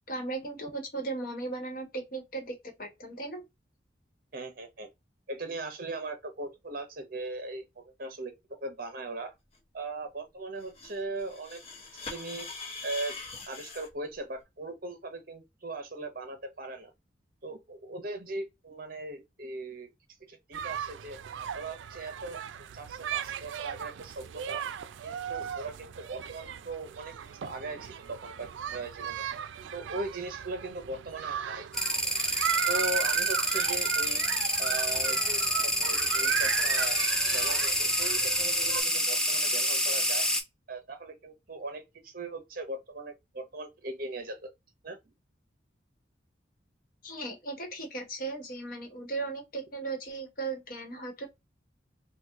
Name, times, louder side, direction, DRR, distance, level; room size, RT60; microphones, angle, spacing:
voice 1, 0.1-3.4 47.0-51.3, right 3 dB, 50° left, 1.1 m, -37 dB
voice 2, 4.3-4.9 5.3-9.3 9.7-11.6 12.1-12.5 12.8-13.1 13.5-16.9 17.4-19.9 20.3-21.2 21.5-22.4 22.7-24.6 25.0-27.1 27.4-29.3 29.7-31.7 32.7-34.2 34.6-37.0 37.3-40.3 40.7-44.5 44.8-45.0, right 2 dB, 50° right, 0.8 m, -39 dB
sound 1, 10.6-13.9, left 3 dB, 30° left, 0.8 m, -42 dB
sound 2, 20.5-38.8, right 9 dB, 85° right, 0.4 m, -36 dB
sound 3, 31.7-40.4, equal, 5° left, 0.5 m, -27 dB
3.0 x 2.2 x 3.5 m
head